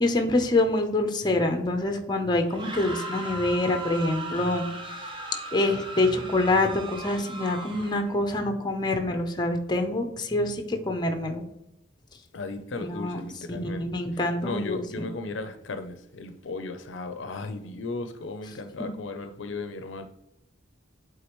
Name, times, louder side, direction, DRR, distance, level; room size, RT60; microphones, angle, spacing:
voice 1, 0.0-4.7 5.5-11.4 12.8-13.2 13.5-15.1 18.8-18.9, left 2 dB, 20° left, 0.7 m, -26 dB
sound 1, 2.4-8.2, right 2 dB, 25° right, 0.8 m, -38 dB
voice 2, 12.3-13.9 14.4-20.1, left 3 dB, 70° left, 0.5 m, -35 dB
8.3 x 3.7 x 3.0 m
head